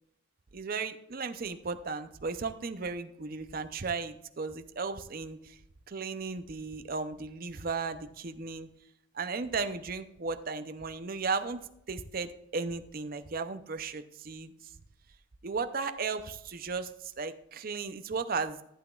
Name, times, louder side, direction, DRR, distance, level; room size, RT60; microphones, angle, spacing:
voice 1, 0.5-5.6 5.9-8.7 9.1-11.6 11.9-14.5 15.4-18.6, right 4 dB, 45° right, 9 dB, 0.6 m, -35 dB
14.5 x 8.2 x 2.4 m, 0.80 s
head